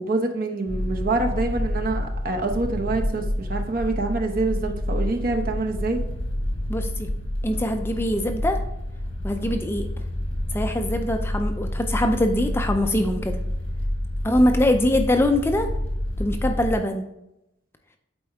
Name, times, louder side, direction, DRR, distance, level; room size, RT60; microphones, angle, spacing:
voice 1, 0.0-6.0, right 2 dB, 50° right, 4 dB, 0.8 m, -26 dB
sound 1, 0.7-16.8, left 1 dB, 70° left, 1.5 m, -28 dB
voice 2, 6.7-7.1 7.4-8.6 9.2-9.9 10.5-13.4 14.2-15.7 16.2-17.1, left 1 dB, 10° left, 5 dB, 0.4 m, -23 dB
8.0 x 4.3 x 3.5 m, 0.85 s
head